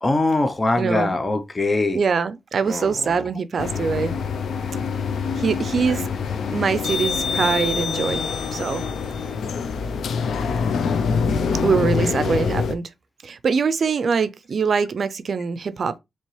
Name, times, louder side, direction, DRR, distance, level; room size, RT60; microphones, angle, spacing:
voice 1, 0.0-2.0 2.7-3.3 5.9-6.0 6.4-6.6, left 2 dB, 30° left, 0.7 m, -23 dB
voice 2, 0.8-1.1 1.9-4.2 5.4-6.1 6.5-8.9 11.6-12.8 13.2-15.9, right 5 dB, 60° right, 0.4 m, -23 dB
sound 1, 3.6-12.7, left 5 dB, 75° left, 0.4 m, -25 dB
4.4 x 2.9 x 3.1 m
cardioid pair, 60°, 0 cm